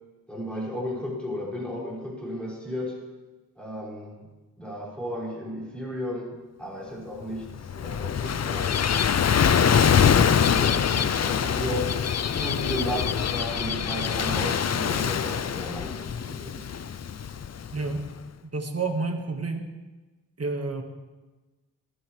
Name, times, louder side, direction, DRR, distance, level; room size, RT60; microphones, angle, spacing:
voice 1, 0.3-3.0 3.6-4.3 4.6-12.0 12.3-16.7, equal, 5° left, -6 dB, 5.5 m, -35 dB
Gull seagull / Waves surf, 7.5-18.0, left 7 dB, 50° left, 0.5 m, -24 dB
voice 2, 17.7-18.1 18.4-19.7 20.4-20.8, right 3 dB, 50° right, 4 dB, 1.6 m, -29 dB
20.0 x 13.5 x 3.2 m, 1.2 s
wide cardioid pair, 100°, 33 cm